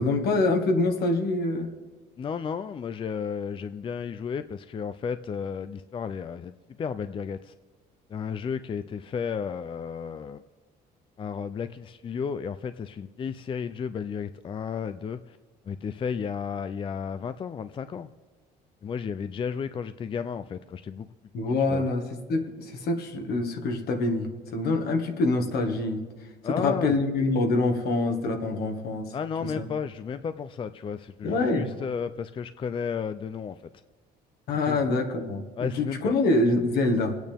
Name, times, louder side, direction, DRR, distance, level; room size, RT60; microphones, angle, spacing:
voice 1, 0.0-1.7 21.3-22.0 22.3-26.0 26.5-29.1 29.4-29.7 31.2-31.7 34.5-35.4 35.8-37.2, left 2 dB, 70° left, 1.8 m, -25 dB
voice 2, 2.2-7.5 8.1-10.4 11.2-15.4 15.7-18.1 18.8-21.1 21.7-21.8 26.4-27.0 29.1-33.6 34.6-34.8 35.6-36.1, left 6 dB, 30° left, 0.4 m, -33 dB
27.0 x 9.0 x 3.5 m
cardioid pair, 110°, 17 cm